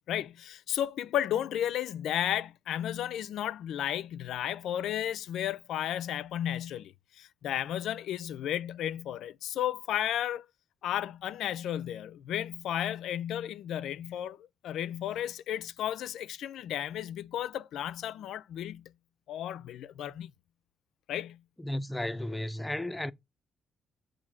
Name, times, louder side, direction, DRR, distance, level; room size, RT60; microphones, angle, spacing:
voice 1, 0.1-10.5 10.8-18.8 19.3-20.3 21.1-21.4, left 11 dB, 80° left, 0.3 m, -33 dB
voice 2, 21.6-23.1, left 1 dB, 5° left, 0.4 m, -34 dB
7.4 x 2.6 x 5.6 m
cardioid pair, 90°, 0 cm